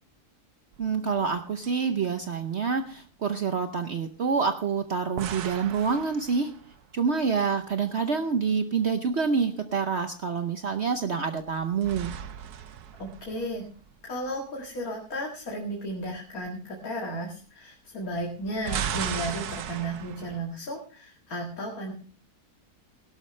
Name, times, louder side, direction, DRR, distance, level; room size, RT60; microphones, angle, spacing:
sound 1, 0.7-1.4 1.6-1.8 5.2-6.8 11.4-13.9 18.4-20.4, right 9 dB, 90° right, 1.4 m, -36 dB
voice 1, 0.8-6.6 6.9-12.1, right 5 dB, 50° right, 7 dB, 1.0 m, -27 dB
voice 2, 13.0-13.6 14.0-21.9, right 1 dB, 65° left, -1 dB, 2.5 m, -34 dB
17.5 x 12.0 x 3.3 m, 0.39 s
omnidirectional pair, 1.6 m